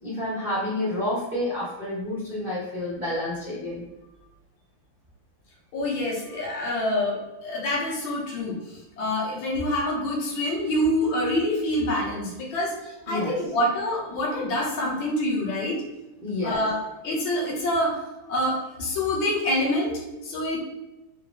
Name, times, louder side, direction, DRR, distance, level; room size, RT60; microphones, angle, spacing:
voice 1, 0.0-3.8 13.1-13.4 16.2-16.7, left 1 dB, 45° right, -9 dB, 0.6 m, -29 dB
voice 2, 5.7-8.6 9.0-15.8 16.4-16.8 17.0-18.0 18.3-20.6, left 1 dB, 70° left, -3 dB, 1.7 m, -26 dB
4.4 x 2.1 x 3.6 m, 1.0 s
omnidirectional pair, 2.4 m